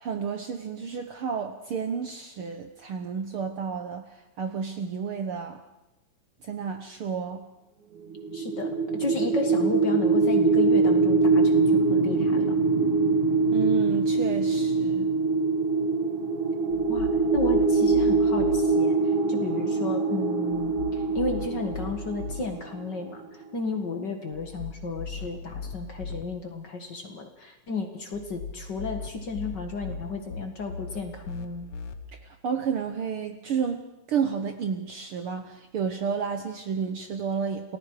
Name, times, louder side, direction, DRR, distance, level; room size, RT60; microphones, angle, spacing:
voice 1, 0.0-4.1 4.4-5.6 6.4-7.4 13.5-15.1 32.4-37.8, right 6 dB, 60° right, 6 dB, 1.6 m, -31 dB
sound 1, 8.1-23.1, right 4 dB, 80° right, 3.3 m, -23 dB
voice 2, 8.3-12.6 16.9-31.7, left 3 dB, 40° left, 4 dB, 2.1 m, -33 dB
sound 2, 16.7-18.6 20.5-22.4 24.3-26.2 28.1-31.9, left 5 dB, 60° left, 2.1 m, -38 dB
28.5 x 19.0 x 4.9 m, 0.97 s
omnidirectional pair, 3.4 m